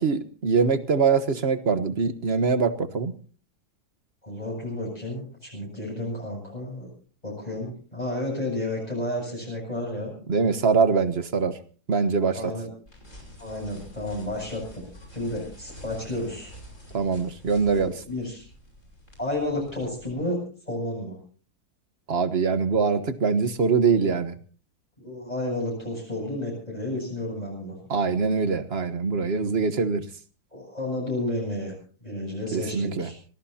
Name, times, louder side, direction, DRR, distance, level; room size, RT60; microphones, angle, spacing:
voice 1, 0.0-3.1 10.3-11.6 11.9-12.5 16.9-18.0 22.1-24.4 27.9-30.0 32.5-33.1, right 5 dB, 40° right, 11 dB, 1.3 m, -23 dB
voice 2, 4.2-6.9 7.2-10.1 12.3-12.7 13.4-14.8 15.1-16.5 17.7-18.5 19.2-21.2 25.0-27.8 30.5-31.7 32.0-33.2, left 1 dB, 25° left, -3 dB, 8.1 m, -31 dB
sound 1, 12.9-20.1, equal, 45° left, 6.2 m, -47 dB
26.0 x 18.0 x 2.8 m, 0.40 s
omnidirectional pair, 1.7 m